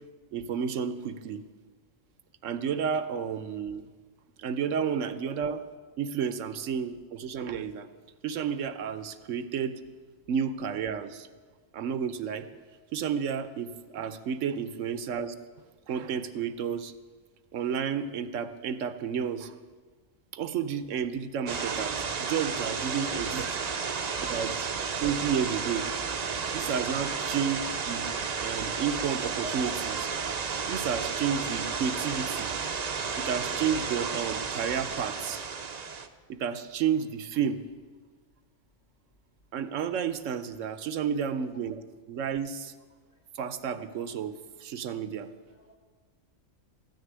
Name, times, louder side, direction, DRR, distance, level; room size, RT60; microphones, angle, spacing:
voice 1, 0.3-1.4 2.4-3.8 4.4-5.6 6.0-7.9 8.2-9.8 10.3-11.3 11.7-12.5 12.9-15.3 15.9-16.9 17.5-19.5 20.3-23.5 24.2-24.7 25.0-25.9 26.5-28.1 28.4-30.1 30.7-32.5 33.2-35.4 36.3-37.6 39.5-42.7 43.3-44.3 44.6-45.3, right 7 dB, 70° right, 12 dB, 1.0 m, -31 dB
sound 1, 21.5-36.1, right 5 dB, 45° right, 0.6 m, -32 dB
voice 2, 23.1-25.0 45.5-45.8, left 3 dB, 85° left, 1 dB, 2.4 m, -57 dB
13.5 x 6.7 x 9.6 m, 1.5 s
omnidirectional pair, 1.4 m